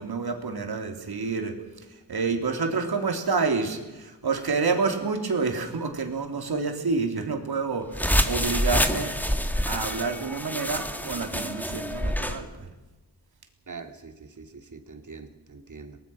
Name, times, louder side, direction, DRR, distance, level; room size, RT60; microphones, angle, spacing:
voice 1, 0.0-1.6 2.1-9.1 9.7-12.7, right 4 dB, 60° right, 3.5 m, -28 dB
sound 1, 7.9-12.4, equal, 5° left, 1.9 m, -27 dB
voice 2, 13.7-16.0, right 4 dB, 45° right, 2.7 m, -43 dB
24.0 x 18.5 x 6.1 m
cardioid pair, 60°, 42 cm